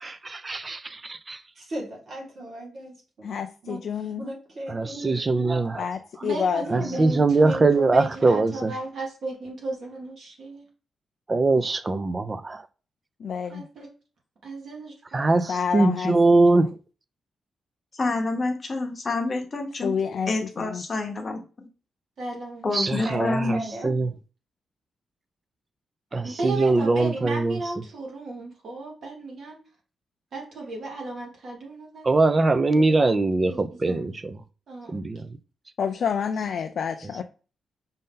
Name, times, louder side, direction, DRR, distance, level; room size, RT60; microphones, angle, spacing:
voice 1, 0.0-1.4 4.7-5.9 6.7-8.7 11.3-12.6 15.1-16.7 22.7-23.6 23.8-24.1 26.1-27.6 32.0-34.4 34.9-35.2, right 3 dB, 25° right, 0.4 m, -22 dB
voice 2, 1.6-3.3 3.6-5.2 23.0-23.9, right 1 dB, 40° right, 1.8 m, -37 dB
voice 3, 3.2-4.2 5.8-7.0 13.2-13.6 15.5-16.1 19.8-20.3 20.6-20.8 35.8-37.2, left 6 dB, 55° left, 0.3 m, -28 dB
voice 4, 6.2-10.6 13.5-13.9 14.4-15.3 22.2-22.7 26.2-29.6 30.3-33.0 33.5-34.1 34.7-35.0, right 2 dB, 55° right, 1.7 m, -35 dB
voice 5, 17.9-20.0 20.3-21.7 22.6-23.7, left 3 dB, 25° left, 0.9 m, -28 dB
5.4 x 2.7 x 3.7 m
wide cardioid pair, 170°, 0 cm